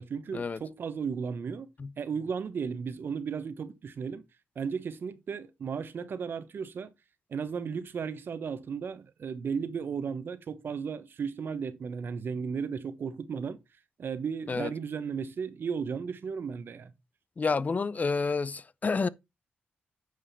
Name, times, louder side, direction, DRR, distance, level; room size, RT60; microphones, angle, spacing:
voice 1, 0.0-1.7 2.0-4.2 4.5-6.9 7.3-13.6 14.0-16.9, right 6 dB, 65° right, 1.1 m, -35 dB
voice 2, 17.4-19.1, left 4 dB, 40° left, 0.7 m, -29 dB
9.4 x 5.2 x 4.1 m
cardioid pair, 60°, 4 cm